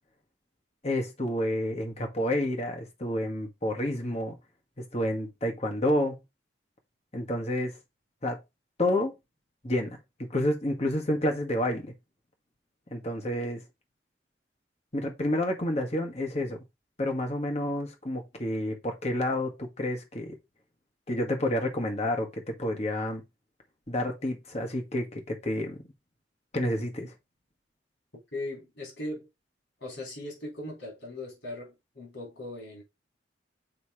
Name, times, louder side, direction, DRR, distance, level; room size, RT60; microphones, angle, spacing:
voice 1, 0.8-4.4 4.9-6.2 7.1-7.8 8.2-8.4 8.8-9.1 9.6-11.9 12.9-13.6 14.9-16.6 17.0-20.3 21.1-23.2 23.9-25.8 26.5-27.1, left 1 dB, 35° left, 1.7 m, -29 dB
voice 2, 28.3-29.3 29.8-32.8, left 1 dB, 75° left, 3.9 m, -39 dB
6.7 x 3.2 x 5.0 m
head